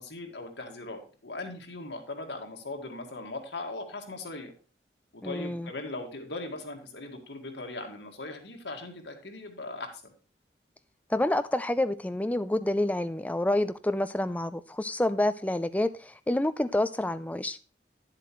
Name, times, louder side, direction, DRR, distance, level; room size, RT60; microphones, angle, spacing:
voice 1, 0.0-4.5 5.1-10.1, left 2 dB, 85° left, 1.8 m, -39 dB
voice 2, 5.2-5.7 11.1-17.6, left 1 dB, 10° left, 0.4 m, -28 dB
10.0 x 7.6 x 3.1 m
head